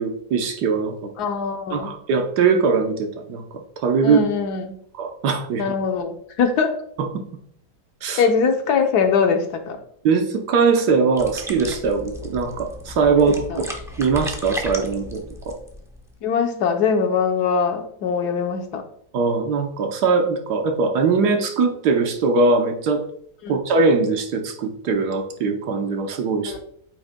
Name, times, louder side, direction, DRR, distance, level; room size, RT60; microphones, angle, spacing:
voice 1, 0.0-1.1 1.7-3.4 3.8-4.2 5.0-5.6 7.0-7.1 8.0-8.2 10.0-13.7 14.0-15.6 19.1-23.0 23.5-26.6, right 4 dB, 75° right, 4 dB, 1.5 m, -21 dB
voice 2, 1.2-1.9 4.0-4.8 5.6-6.8 8.2-9.8 13.2-13.6 16.2-18.8 23.4-23.6 26.5-26.6, left 6 dB, 75° left, 6 dB, 1.4 m, -22 dB
sound 1, 11.2-16.2, left 1 dB, 5° right, 0.4 m, -35 dB
8.6 x 6.2 x 2.2 m, 0.67 s
omnidirectional pair, 1.8 m